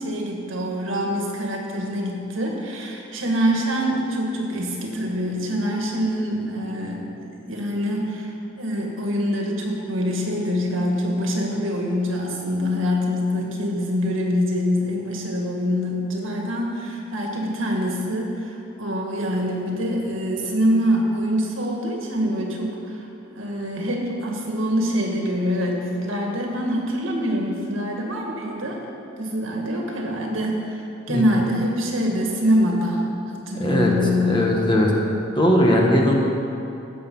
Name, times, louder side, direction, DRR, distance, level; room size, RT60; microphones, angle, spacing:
voice 1, 0.0-23.1 23.3-28.8 29.2-34.6, equal, 80° right, 0 dB, 1.9 m, -25 dB
voice 2, 33.5-33.9 34.2-34.9 35.4-36.1, left 1 dB, 25° left, -1 dB, 1.5 m, -19 dB
15.5 x 6.8 x 5.5 m, 2.8 s
head